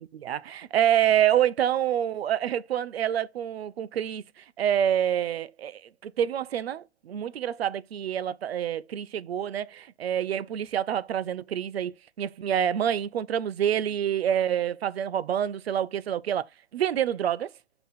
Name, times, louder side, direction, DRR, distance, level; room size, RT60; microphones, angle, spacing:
voice 1, 0.2-4.2 4.6-11.9 12.2-16.4 16.7-17.5, right 10 dB, 65° right, 0.6 m, -27 dB
7.2 x 3.0 x 5.6 m
hypercardioid pair, 140°, 34 cm